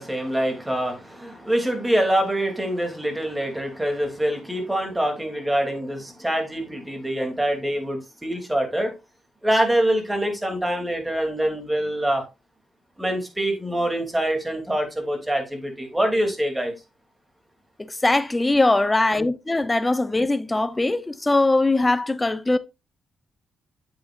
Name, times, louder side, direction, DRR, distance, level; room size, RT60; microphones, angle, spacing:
voice 1, 0.0-8.9 9.4-12.2 13.0-16.7, right 1 dB, 10° right, 3.1 m, -25 dB
voice 2, 17.8-22.6, left 2 dB, 15° left, 0.7 m, -21 dB
8.5 x 8.0 x 2.6 m
cardioid pair, 85°, 0 cm